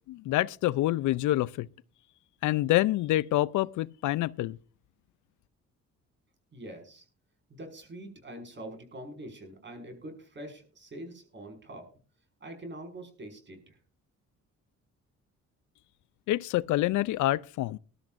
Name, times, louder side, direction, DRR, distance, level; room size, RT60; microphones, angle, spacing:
voice 1, 0.1-1.7 2.4-4.6 16.3-17.8, left 16 dB, 80° left, 0.5 m, -27 dB
voice 2, 6.5-7.1 7.5-11.9 12.4-13.8, right 1 dB, 40° right, 5.6 m, -44 dB
20.0 x 12.0 x 2.5 m
cardioid pair, 90°, 30 cm